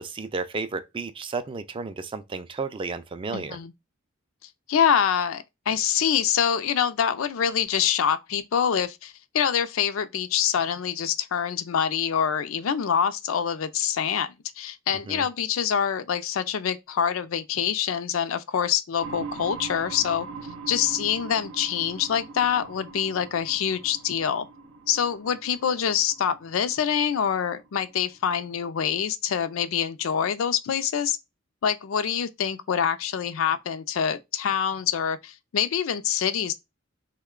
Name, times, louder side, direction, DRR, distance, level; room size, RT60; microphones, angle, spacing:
voice 1, 0.0-3.6 15.1-15.3, right 4 dB, 25° right, 0.3 m, -32 dB
voice 2, 3.3-3.7 4.7-20.3 20.7-24.5 24.9-31.2 31.6-36.5, left 8 dB, 85° left, 0.4 m, -25 dB
sound 1, 19.0-28.6, right 4 dB, 85° right, 0.6 m, -42 dB
3.1 x 2.2 x 3.6 m
head